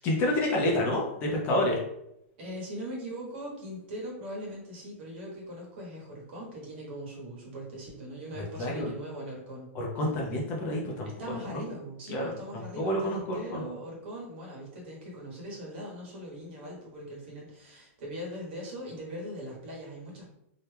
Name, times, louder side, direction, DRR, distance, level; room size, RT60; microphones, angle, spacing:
voice 1, 0.0-1.8 8.4-8.9 9.7-11.1 11.5-11.6 12.1-12.3 12.8-13.6, left 1 dB, 25° left, -2 dB, 0.5 m, -28 dB
voice 2, 2.4-9.7 9.9-10.2 11.0-20.3, equal, 50° right, -3 dB, 1.3 m, -40 dB
2.8 x 2.2 x 3.3 m, 0.80 s
hypercardioid pair, 165°, 8 cm